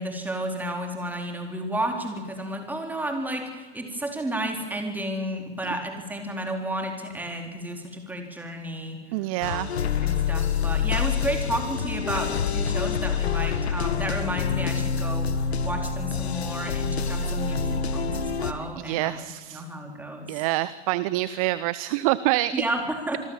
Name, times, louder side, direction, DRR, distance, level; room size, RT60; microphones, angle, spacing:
voice 1, 0.0-9.0 9.4-9.6 10.0-19.3 19.5-20.3 22.5-23.2, right 1 dB, 5° right, 3 dB, 4.2 m, -32 dB
voice 2, 9.1-9.7 17.2-17.3 18.8-19.6 20.3-22.5, right 17 dB, 30° right, 17 dB, 0.7 m, -26 dB
sound 1, 9.4-18.5, left 6 dB, 65° left, 1.7 m, -27 dB
27.0 x 21.0 x 7.4 m, 1.4 s
figure-of-eight pair, 110°, 34 cm